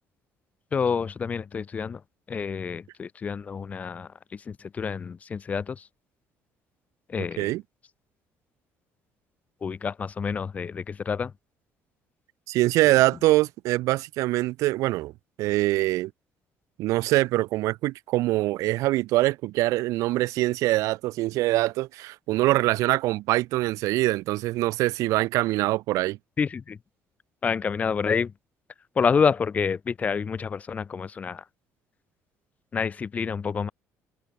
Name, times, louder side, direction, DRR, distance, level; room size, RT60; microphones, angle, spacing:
voice 1, 0.7-2.0 2.3-5.9 7.1-7.5 9.6-11.3 12.8-12.9 26.4-26.8 27.4-28.3 29.0-31.4 32.7-33.7, left 6 dB, 25° left, 3.7 m, -28 dB
voice 2, 12.5-15.1 15.4-16.1 16.8-26.2, right 18 dB, 85° right, 5.3 m, -24 dB
cardioid pair, 160°, 5 cm